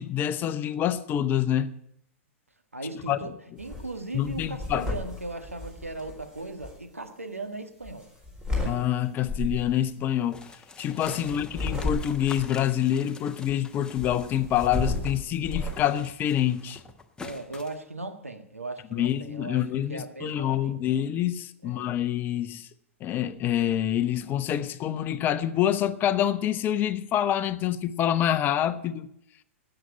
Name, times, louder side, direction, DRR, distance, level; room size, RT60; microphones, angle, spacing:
voice 1, 0.0-1.7 3.1-3.3 4.1-4.9 8.6-16.8 18.9-22.7 23.0-29.1, left 11 dB, 25° left, 0.8 m, -26 dB
voice 2, 2.7-3.3 3.6-8.1 11.1-11.4 17.2-20.9 21.6-21.9, right 2 dB, 85° right, 1.5 m, -38 dB
sound 1, 3.6-3.9 4.2-6.7 7.8-8.7 9.2-9.7 11.3-12.4 13.9-15.8, left 2 dB, 10° right, 4.1 m, -32 dB
sound 2, 10.3-15.2 15.5-17.8, left 4 dB, 10° left, 1.1 m, -45 dB
12.5 x 8.9 x 9.5 m
figure-of-eight pair, 105°, 7 cm